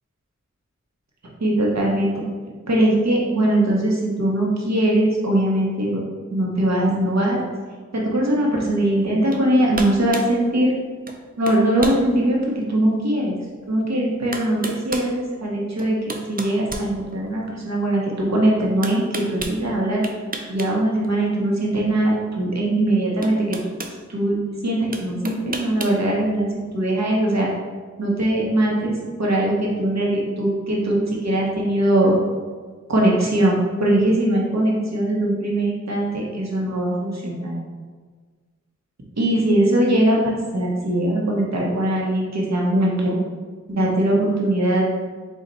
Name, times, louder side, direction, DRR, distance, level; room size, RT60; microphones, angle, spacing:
voice 1, 1.4-2.1 2.7-6.0 6.3-7.4 7.9-10.7 11.4-13.4 13.7-20.1 20.5-23.6 24.1-26.5 26.7-27.5 28.0-32.2 32.9-37.5 39.2-43.2 43.7-44.9, right 1 dB, 65° right, -3 dB, 1.0 m, -21 dB
sound 1, 9.3-9.5 9.7-10.3 11.1-11.2 11.5-12.0 12.6-12.7 13.8-13.9 14.3-15.1 15.8-17.5 18.8-19.6 20.0-20.7 21.0-21.2 22.6-22.7 23.2-24.0 24.9-26.0, right 3 dB, 30° right, 0.4 m, -31 dB
4.2 x 2.5 x 3.9 m, 1.5 s
wide cardioid pair, 65°, 29 cm